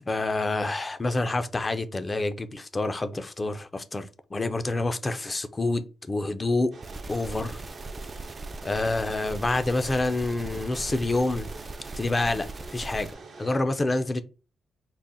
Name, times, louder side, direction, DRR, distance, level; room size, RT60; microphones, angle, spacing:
voice 1, 0.1-6.7 7.1-7.6 8.6-11.5 12.0-13.1 13.4-14.2, left 2 dB, 25° left, 0.5 m, -27 dB
sound 1, 6.7-13.6, right 4 dB, 60° right, 0.8 m, -46 dB
sound 2, 6.8-13.1, right 2 dB, 30° right, 0.4 m, -39 dB
4.0 x 2.0 x 3.7 m
cardioid pair, 75°, 0 cm